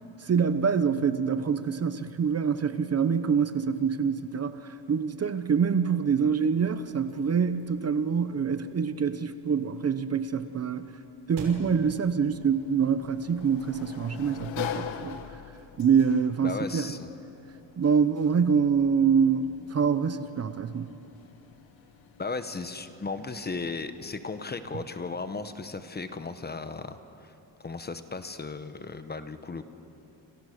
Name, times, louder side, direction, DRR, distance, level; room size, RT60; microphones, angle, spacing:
voice 1, 0.2-11.0 11.3-15.2 15.8-16.9 17.8-21.0, right 6 dB, 35° right, 11 dB, 0.8 m, -25 dB
sound 1, 6.3-13.4, right 3 dB, 75° right, 6.0 m, -50 dB
Sliding door, 12.3-24.9, left 9 dB, 85° left, 1.5 m, -44 dB
voice 2, 16.4-17.1 22.2-27.3 27.6-29.7, left 4 dB, 20° left, 10 dB, 1.0 m, -36 dB
29.0 x 27.5 x 6.6 m, 2.9 s
wide cardioid pair, 175°, 45 cm